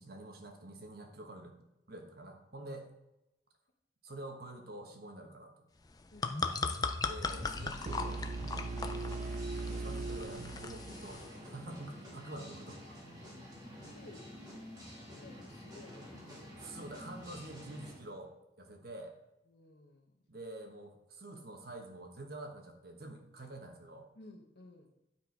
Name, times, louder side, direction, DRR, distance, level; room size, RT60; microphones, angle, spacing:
voice 1, 0.0-1.5 1.9-2.9 4.0-5.5 7.0-8.6 9.7-13.0 16.6-19.1 20.3-24.1, right 2 dB, 60° right, 3 dB, 1.3 m, -47 dB
sound 1, 5.9-11.3, left 4 dB, 20° left, 0.5 m, -38 dB
sound 2, 7.3-18.0, left 1 dB, 25° right, 2.2 m, -50 dB
sound 3, 7.9-11.7, right 3 dB, 40° right, 0.4 m, -40 dB
voice 2, 13.8-14.3 15.2-16.8 19.5-20.2 24.1-24.9, left 2 dB, 65° left, 3 dB, 1.3 m, -56 dB
10.0 x 4.5 x 4.7 m, 0.91 s
head